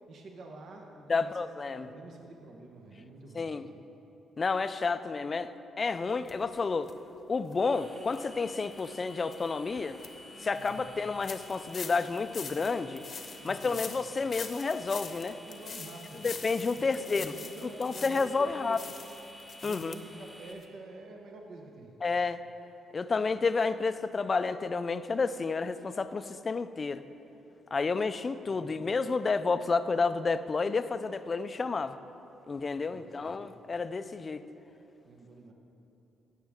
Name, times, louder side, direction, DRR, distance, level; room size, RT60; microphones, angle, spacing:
voice 1, 0.1-0.9 1.1-1.4 1.7-3.7 10.6-11.0 13.4-13.9 15.4-16.4 16.7-18.8 19.6-21.9 28.5-28.9 32.8-33.4 35.0-35.5, right 2 dB, 65° right, 1 dB, 1.0 m, -48 dB
voice 2, 1.1-1.9 3.3-3.6 4.4-6.9 7.3-10.0 10.4-13.0 13.4-15.4 16.2-17.3 17.8-18.8 19.6-19.9 22.0-22.4 22.9-27.0 27.7-32.0 32.5-34.4, left 4 dB, 35° left, 12 dB, 0.4 m, -30 dB
sound 1, 6.3-6.4 6.8-6.9 7.4-7.5 8.1-8.2 8.7-8.8 9.3-9.4 9.8-10.1 10.5-10.7 11.2-18.4 18.7-20.0 20.3-20.4 20.6-20.7, left 6 dB, 50° left, 0.8 m, -44 dB
sound 2, 7.7-20.5, left 1 dB, 10° right, 1.5 m, -51 dB
16.5 x 6.5 x 3.6 m, 3.0 s
cardioid pair, 90°, 0 cm